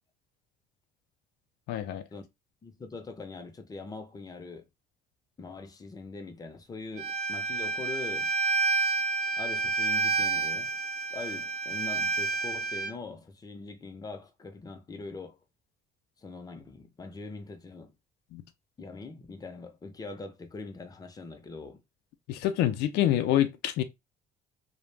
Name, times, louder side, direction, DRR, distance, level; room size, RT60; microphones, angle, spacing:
voice 1, 1.7-2.0 18.3-18.4 22.3-23.8, left 12 dB, 80° left, 0.4 m, -26 dB
voice 2, 2.6-4.7 5.4-8.3 9.4-10.7 11.1-15.4 16.2-17.9 18.8-21.8, left 3 dB, 20° left, 0.5 m, -42 dB
Bowed string instrument, 7.0-12.9, right 4 dB, 65° right, 0.7 m, -29 dB
2.3 x 2.1 x 3.2 m
cardioid pair, 110°, 17 cm